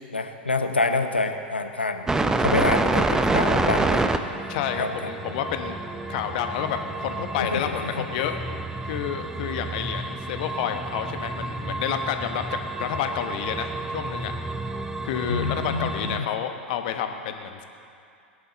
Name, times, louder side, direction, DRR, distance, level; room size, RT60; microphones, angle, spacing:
voice 1, 0.1-2.1 2.4-4.0 4.8-4.9 7.4-8.1 15.3-16.2, left 3 dB, 85° left, 7 dB, 0.9 m, -27 dB
sound 1, 2.1-16.2, right 2 dB, 10° right, 0.7 m, -28 dB
voice 2, 3.6-3.9 4.5-5.8 6.1-8.4 8.8-12.4 12.8-14.3 15.0-17.6, left 9 dB, 50° left, 6 dB, 1.1 m, -30 dB
20.5 x 11.0 x 4.1 m, 2.5 s
figure-of-eight pair, 90°, 6 cm